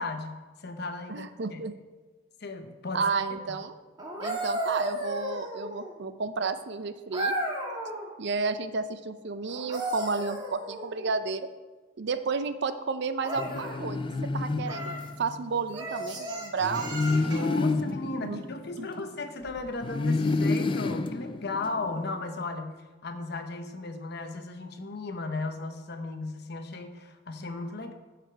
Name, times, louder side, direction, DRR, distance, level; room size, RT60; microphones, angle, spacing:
voice 1, 0.0-1.6 2.4-3.1 3.5-3.6 17.3-27.9, left 3 dB, 60° left, 7 dB, 0.9 m, -36 dB
voice 2, 1.1-1.7 2.9-3.8 4.2-7.4 8.2-11.5 12.0-14.0 14.3-17.5 18.2-18.4 18.8-18.9, right 4 dB, 60° right, 11 dB, 0.5 m, -32 dB
sound 1, 4.0-6.0 7.1-8.1 9.5-11.1 13.2-13.8 14.6-15.1 15.7-17.5 19.4-19.6, right 1 dB, 20° right, 1.6 m, -34 dB
sound 2, 13.4-15.5 16.6-19.3 19.8-22.1, left 3 dB, 25° left, 0.4 m, -29 dB
12.5 x 5.1 x 4.6 m, 1.3 s
head